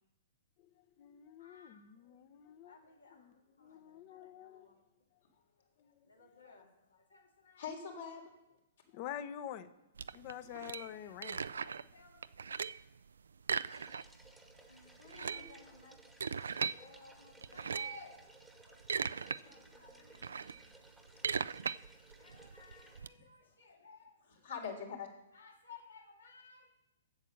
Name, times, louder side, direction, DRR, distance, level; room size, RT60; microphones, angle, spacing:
voice 1, 0.8-2.8 3.1-4.7 5.8-6.4 8.9-9.7 10.1-11.4 19.3-19.8, left 10 dB, 40° left, 0.8 m, -48 dB
voice 2, 1.4-1.9 2.6-4.8 5.8-7.6 10.7-12.3 13.6-14.2 14.7-18.2 18.5-18.8 19.4-20.6 22.2-24.5 25.3-26.7, left 3 dB, 85° left, 2.4 m, -58 dB
voice 3, 7.6-8.3 15.0-15.5 19.4-19.5 23.4-23.8 24.3-25.1, left 6 dB, 70° left, 3.4 m, -44 dB
sound 1, 10.0-11.9 12.2-12.9 13.4-14.3 14.6-14.7 15.0-16.8 17.4-18.0 18.6-19.4 19.8-23.1, right 6 dB, 80° right, 0.3 m, -38 dB
sound 2, 13.7-23.0, right 1 dB, ahead, 1.1 m, -61 dB
8.4 x 7.7 x 6.6 m
hypercardioid pair, 120°, 0 cm